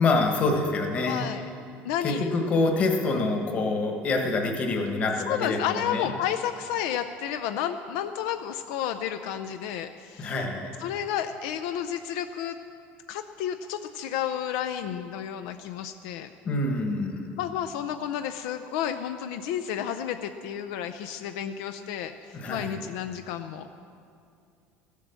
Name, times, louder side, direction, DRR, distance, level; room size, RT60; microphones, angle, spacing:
voice 1, 0.0-1.3 2.0-6.1 10.2-10.7 16.4-17.3 22.3-22.8, left 3 dB, 30° left, 3 dB, 1.3 m, -26 dB
voice 2, 1.1-1.5 1.8-2.3 5.3-10.3 10.8-12.6 13.1-16.3 17.4-23.8, left 10 dB, 75° left, 8 dB, 0.5 m, -31 dB
15.0 x 8.3 x 7.0 m, 2.4 s
cardioid pair, 170°, 5 cm